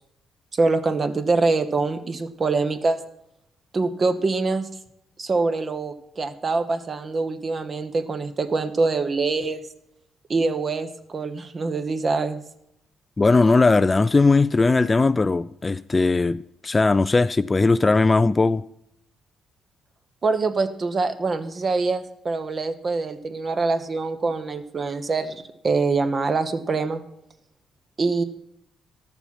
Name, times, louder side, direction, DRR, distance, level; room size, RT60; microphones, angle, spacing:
voice 1, 0.5-3.0 3.7-4.7 5.2-9.6 10.3-12.4 20.2-27.0 28.0-28.2, right 3 dB, 40° right, 1.1 m, -24 dB
voice 2, 13.2-18.6, left 3 dB, 25° left, 0.3 m, -19 dB
12.5 x 7.0 x 5.8 m
cardioid pair, 90°, 0 cm